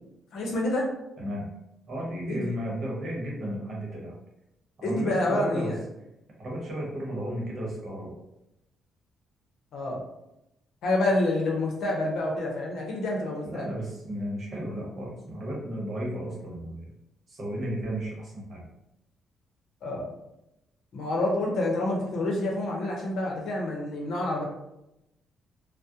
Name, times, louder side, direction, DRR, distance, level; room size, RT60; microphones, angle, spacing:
voice 1, 0.3-0.9 2.3-2.5 4.8-5.8 9.7-10.0 10.8-13.7 19.8-20.1 20.9-24.4, left 1 dB, 75° left, -1 dB, 0.7 m, -28 dB
voice 2, 1.9-4.2 4.8-5.7 6.4-8.1 13.4-16.9 17.3-18.6, equal, 45° right, -3 dB, 0.9 m, -34 dB
2.3 x 2.0 x 2.7 m, 0.88 s
cardioid pair, 90°, 0 cm